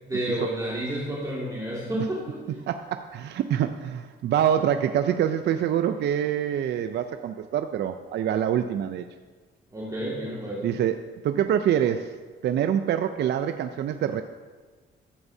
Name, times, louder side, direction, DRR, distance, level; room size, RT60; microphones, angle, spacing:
voice 1, 0.1-2.4 9.7-10.8, right 1 dB, 20° right, -6 dB, 1.9 m, -30 dB
voice 2, 2.6-9.0 10.6-12.2 12.4-14.2, right 9 dB, 60° right, 8 dB, 0.4 m, -25 dB
13.0 x 8.0 x 2.7 m, 1.4 s
cardioid pair, 90°, 20 cm